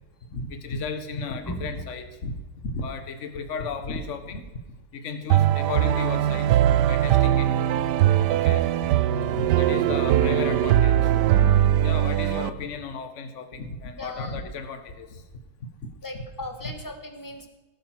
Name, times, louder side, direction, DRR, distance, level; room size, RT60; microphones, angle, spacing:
voice 1, 0.3-2.4 2.6-4.6 4.9-7.5 7.8-7.9 8.3-8.7 9.3-11.2 11.8-15.2 15.6-15.9, left 4 dB, 40° left, 8 dB, 1.4 m, -34 dB
voice 2, 1.5-1.8 14.0-14.4 16.0-17.5, left 1 dB, 10° left, 6 dB, 1.2 m, -37 dB
sound 1, 5.3-12.5, right 11 dB, 75° right, 0.9 m, -21 dB
17.5 x 8.9 x 6.0 m, 1.1 s
omnidirectional pair, 2.4 m